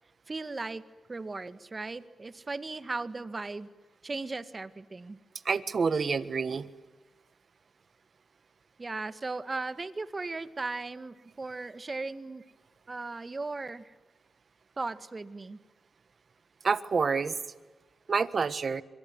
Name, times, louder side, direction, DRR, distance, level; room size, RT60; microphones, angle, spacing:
voice 1, 0.3-0.8 1.1-3.7 4.0-5.2 8.8-12.4 12.9-13.8 14.8-15.6, right 3 dB, 35° right, 13 dB, 1.8 m, -37 dB
voice 2, 5.4-6.7 16.6-17.3 18.1-18.8, right 5 dB, 55° right, 14 dB, 1.5 m, -27 dB
26.5 x 23.5 x 9.6 m, 1.2 s
cardioid pair, 65°, 0 cm